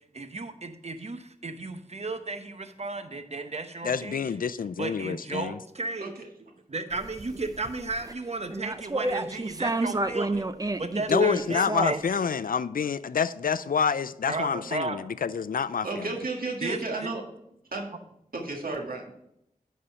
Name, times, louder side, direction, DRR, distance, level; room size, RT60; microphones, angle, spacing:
voice 1, 0.1-4.3 4.8-6.1 6.7-10.5 10.8-12.0 14.3-15.0 16.6-17.1, right 3 dB, 50° right, 0.9 m, -34 dB
voice 2, 3.8-5.6 11.1-16.1, left 6 dB, 75° left, 0.4 m, -27 dB
sound 1, 6.9-8.1 8.5-12.2, right 2 dB, 25° right, 0.6 m, -30 dB
voice 3, 15.8-17.2 17.7-17.9 18.3-19.1, right 3 dB, 90° right, 1.8 m, -33 dB
10.5 x 4.3 x 5.5 m
wide cardioid pair, 55°, 15 cm